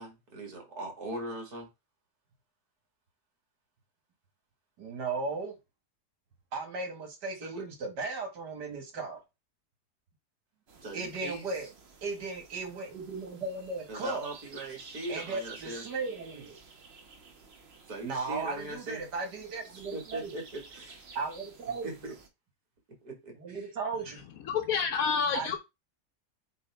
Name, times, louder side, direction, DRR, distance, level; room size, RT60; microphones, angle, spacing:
voice 1, 0.0-1.7 7.4-7.7 10.8-11.5 13.9-15.8 17.9-19.1 19.9-21.0 21.8-22.1 23.0-23.6, right 1 dB, 65° right, 2.7 m, -40 dB
voice 2, 4.8-5.5 6.5-9.2 10.9-11.7 12.0-14.3 15.1-16.6 18.0-20.3 21.2-21.9 23.4-24.2 25.3-25.6, right 3 dB, 80° right, 2.3 m, -36 dB
sound 1, 10.7-22.3, right 4 dB, 40° right, 1.2 m, -53 dB
voice 3, 24.1-25.6, left 6 dB, 60° left, 1.1 m, -29 dB
8.2 x 3.3 x 3.5 m
omnidirectional pair, 1.8 m